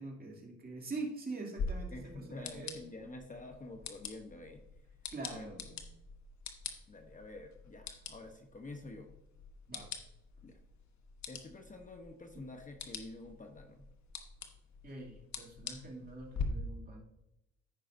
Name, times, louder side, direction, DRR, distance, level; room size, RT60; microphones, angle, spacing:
voice 1, 0.0-2.8 5.1-5.8 9.7-9.9 14.8-17.0, right 3 dB, 30° right, -1 dB, 2.7 m, -44 dB
sound 1, 1.6-16.4, left 5 dB, 65° left, 1.2 m, -45 dB
voice 2, 1.9-4.6 5.3-5.5 6.9-9.1 10.4-10.6 11.3-13.9, left 2 dB, 25° left, 4 dB, 0.9 m, -48 dB
15.0 x 5.6 x 2.6 m, 0.88 s
cardioid pair, 90°, 30 cm